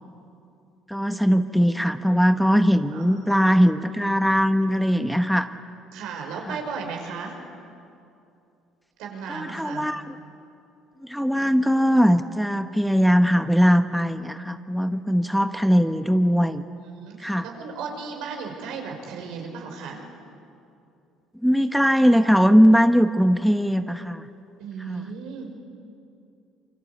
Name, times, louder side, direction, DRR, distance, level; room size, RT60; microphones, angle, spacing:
voice 1, 0.9-5.5 6.5-6.6 9.3-10.1 11.0-16.6 17.2-17.4 21.4-24.3 24.9-25.0, equal, ahead, 8 dB, 1.1 m, -20 dB
voice 2, 2.9-3.4 5.9-7.4 9.0-9.9 16.8-20.0 24.6-25.6, right 5 dB, 80° right, 2 dB, 5.8 m, -35 dB
28.0 x 24.0 x 8.3 m, 2.6 s
supercardioid pair, 90°, 0 cm